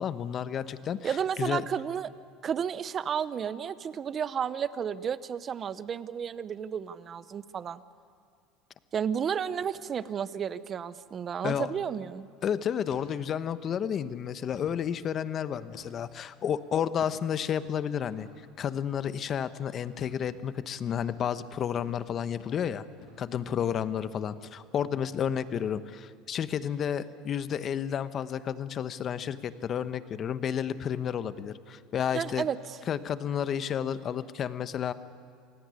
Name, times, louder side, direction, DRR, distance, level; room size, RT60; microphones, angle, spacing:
voice 1, 0.0-1.6 11.4-11.7 12.4-18.3 18.6-22.8 23.2-32.5 32.9-34.9, left 8 dB, 40° left, 13 dB, 1.0 m, -31 dB
voice 2, 1.0-2.1 2.4-7.8 8.9-12.3 32.1-32.8, right 8 dB, 35° right, 15 dB, 0.8 m, -32 dB
sound 1, 9.5-9.7 10.0-10.1 10.5-10.8 11.5-11.7 12.2-12.3 12.9-13.1 13.6-13.7 14.3-14.8 15.7-16.1 17.0-17.2 18.2-18.3 19.0-19.2 20.0-20.2 20.9-21.1 21.7-21.9 22.4-22.6 22.9-23.2 23.6-24.0, left 6 dB, 65° left, 6.8 m, -51 dB
27.5 x 17.5 x 9.8 m, 2.3 s
supercardioid pair, 120°, 0 cm